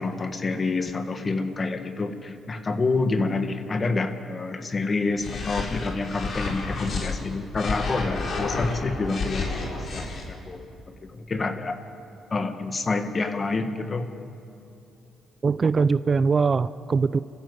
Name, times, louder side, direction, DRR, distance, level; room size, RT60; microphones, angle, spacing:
voice 1, 0.0-10.6 11.1-11.8 12.3-14.1, left 3 dB, 35° left, 7 dB, 1.8 m, -28 dB
sound 1, 5.2-7.1 7.5-10.2, left 3 dB, 55° left, 4.4 m, -30 dB
voice 2, 15.4-17.2, right 5 dB, 35° right, 15 dB, 0.5 m, -22 dB
28.5 x 15.0 x 8.1 m, 2.7 s
cardioid pair, 90°, 0 cm